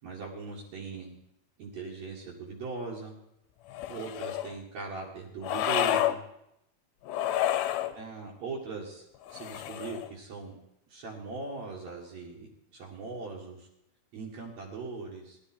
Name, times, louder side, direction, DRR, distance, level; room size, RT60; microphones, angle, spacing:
voice 1, 0.0-1.2 1.6-3.1 3.9-6.2 7.9-10.6 10.9-13.7 14.1-15.4, right 4 dB, 70° right, -5 dB, 3.0 m, -40 dB
sound 1, 3.7-4.5 5.4-6.2 7.1-7.9 9.3-10.1, left 12 dB, 80° left, 1.9 m, -29 dB
17.5 x 11.5 x 4.4 m, 0.81 s
omnidirectional pair, 3.3 m